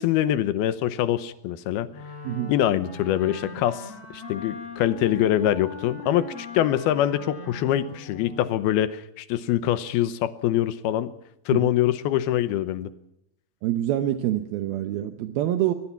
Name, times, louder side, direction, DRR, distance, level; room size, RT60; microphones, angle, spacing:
voice 1, 0.0-1.9 2.5-11.1 11.5-12.9, left 12 dB, 75° left, 13 dB, 2.6 m, -24 dB
Wind instrument woodwind instrument, 1.9-8.6, left 2 dB, 40° left, 5.0 m, -40 dB
voice 2, 13.6-15.7, right 12 dB, 75° right, 8 dB, 2.5 m, -26 dB
21.5 x 21.0 x 5.8 m, 0.81 s
omnidirectional pair, 4.9 m